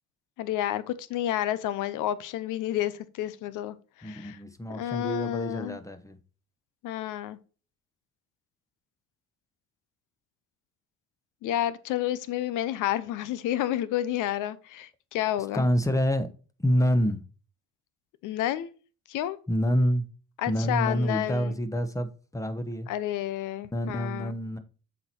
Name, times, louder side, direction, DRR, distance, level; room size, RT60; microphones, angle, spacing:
voice 1, 0.4-4.4 4.7-5.8 6.8-7.4 11.4-15.7 18.2-18.7 19.1-19.4 20.4-21.6 22.9-24.3, left 12 dB, 90° left, 0.7 m, -30 dB
voice 2, 4.0-6.2 15.5-16.3 16.6-17.2 19.5-20.1 20.5-22.9 23.7-24.6, equal, 10° left, 1.0 m, -27 dB
7.7 x 4.4 x 4.4 m
cardioid pair, 90°, 30 cm